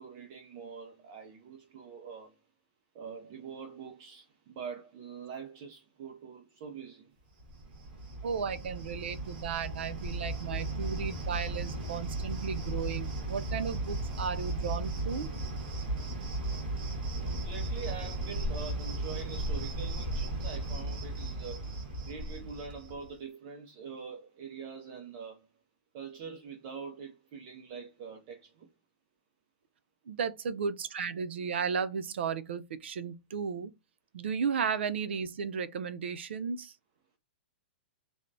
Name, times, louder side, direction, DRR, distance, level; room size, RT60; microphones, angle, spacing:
voice 1, 0.0-2.4 2.9-7.2 17.1-21.7 22.1-25.5 25.9-28.7, right 6 dB, 25° right, 0.3 m, -44 dB
Cricket, 7.4-23.1, right 2 dB, 55° right, 1.3 m, -36 dB
voice 2, 8.2-15.3 30.1-33.7 34.1-36.7, right 6 dB, 90° right, 0.5 m, -34 dB
3.2 x 2.0 x 2.6 m
supercardioid pair, 180°, 6 cm